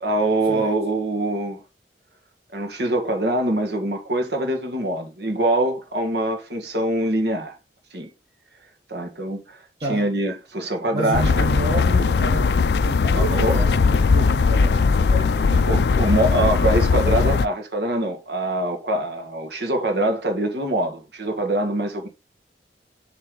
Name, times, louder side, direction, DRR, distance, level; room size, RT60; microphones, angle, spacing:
voice 1, 0.0-1.6 2.5-7.6 7.9-8.1 8.9-9.6 9.9-11.3 13.0-13.6 15.6-22.1, right 1 dB, 70° right, 1.7 m, -24 dB
voice 2, 10.9-15.7, right 2 dB, 35° right, 1.5 m, -30 dB
sound 1, 11.1-17.5, left 4 dB, 65° left, 0.4 m, -19 dB
6.8 x 3.3 x 5.4 m
head